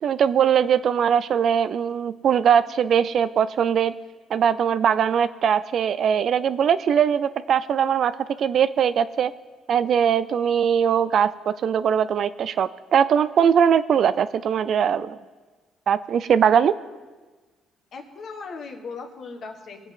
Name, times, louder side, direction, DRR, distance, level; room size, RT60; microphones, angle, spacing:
voice 1, 0.0-3.9 4.3-9.3 9.7-15.2 15.9-16.7, right 8 dB, 55° right, 14 dB, 0.4 m, -21 dB
voice 2, 17.9-19.9, left 4 dB, 50° left, 4 dB, 1.4 m, -38 dB
21.0 x 7.7 x 3.7 m, 1.3 s
cardioid pair, 120°, 0 cm